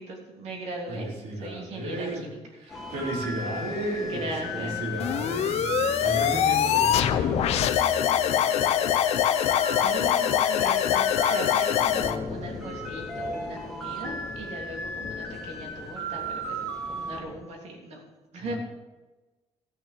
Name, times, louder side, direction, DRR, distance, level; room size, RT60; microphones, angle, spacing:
voice 1, 0.0-2.4 4.1-4.8 5.9-6.0 9.3-18.0 18.3-18.5, right 2 dB, 70° right, -1 dB, 3.1 m, -39 dB
voice 2, 0.9-2.3 2.6-7.5 18.4-18.6, right 1 dB, 90° right, -3 dB, 3.9 m, -33 dB
sound 1, 2.7-17.2, right 1 dB, ahead, 2.2 m, -36 dB
sound 2, 5.0-12.2, left 10 dB, 65° left, 0.7 m, -23 dB
sound 3, 11.8-17.4, left 5 dB, 25° left, 0.7 m, -41 dB
14.0 x 6.7 x 6.8 m, 1.2 s
cardioid pair, 165°, 11 cm